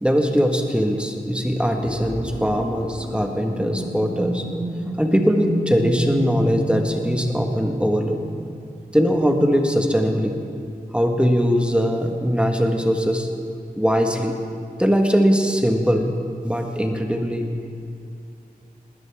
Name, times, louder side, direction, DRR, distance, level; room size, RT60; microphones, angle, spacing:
voice 1, 0.0-4.4 5.0-8.2 8.9-10.4 10.9-13.3 13.8-14.4 14.8-16.1 16.4-17.5, equal, 5° right, 2 dB, 1.6 m, -21 dB
sound 1, 1.8-9.5, right 1 dB, 80° right, 4.1 m, -31 dB
20.5 x 16.5 x 3.6 m, 2.4 s
wide cardioid pair, 75°, 15 cm